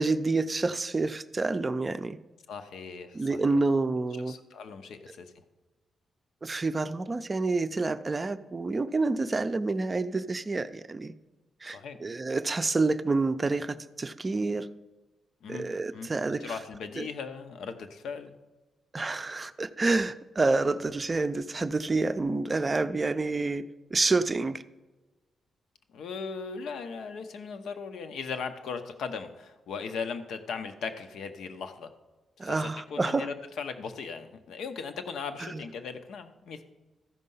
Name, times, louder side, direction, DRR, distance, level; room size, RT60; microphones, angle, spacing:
voice 1, 0.0-2.2 3.1-4.3 6.4-11.1 11.6-14.7 15.5-16.6 17.0-17.1 18.9-23.7 23.9-24.6 32.4-33.3 35.4-35.6, right 3 dB, 25° right, 12 dB, 0.4 m, -28 dB
voice 2, 2.5-3.6 4.3-5.3 11.6-12.0 15.4-15.7 15.9-16.1 16.4-18.3 25.9-31.9 32.4-36.6, left 5 dB, 85° left, 8 dB, 0.8 m, -38 dB
14.0 x 5.5 x 5.5 m, 1.2 s
cardioid pair, 115°, 0 cm